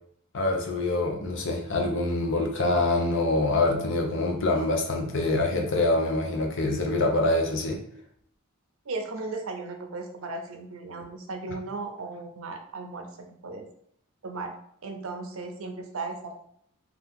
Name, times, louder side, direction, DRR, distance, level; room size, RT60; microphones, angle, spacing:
voice 1, 0.3-7.8, left 2 dB, 60° left, 2 dB, 0.7 m, -25 dB
voice 2, 8.8-13.7 14.2-14.5 14.8-16.5, right 3 dB, 70° right, 3 dB, 0.6 m, -36 dB
2.9 x 2.4 x 3.5 m, 0.68 s
head